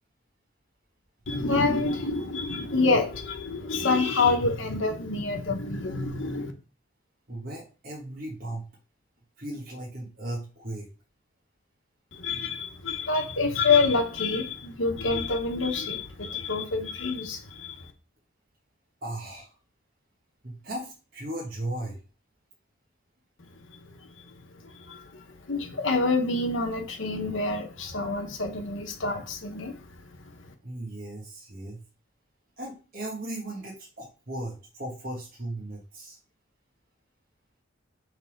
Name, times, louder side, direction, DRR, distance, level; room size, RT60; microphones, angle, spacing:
voice 1, 1.3-6.5 12.1-17.9 23.7-23.8 24.2-24.3 24.6-30.5, left 3 dB, 70° left, 1.1 m, -27 dB
voice 2, 7.3-8.7 9.4-10.9 19.0-19.6 20.4-22.0 30.6-31.8 32.6-36.2, right 1 dB, 45° right, 1.4 m, -36 dB
6.4 x 3.6 x 5.1 m
head